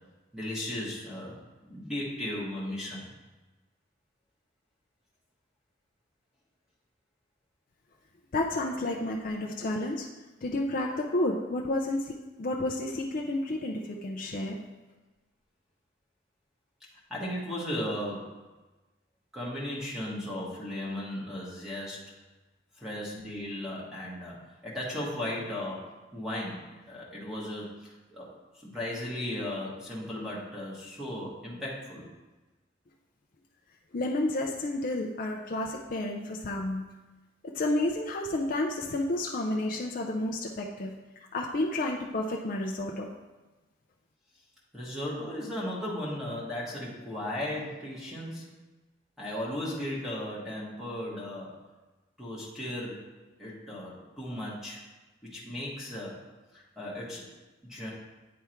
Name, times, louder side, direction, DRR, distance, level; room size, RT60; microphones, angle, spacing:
voice 1, 0.3-1.3 1.6-3.0 17.1-18.3 19.3-22.1 22.8-28.3 28.5-32.1 44.7-48.6 49.2-51.6 52.2-53.1 53.4-54.8 55.2-56.2 56.5-57.3 57.6-57.9, left 1 dB, 5° right, -6 dB, 1.5 m, -36 dB
voice 2, 8.3-10.1 10.4-14.6 33.9-36.8 37.4-40.9 41.3-43.1, left 1 dB, 50° left, 0 dB, 0.5 m, -31 dB
9.3 x 3.5 x 4.4 m, 1.2 s
head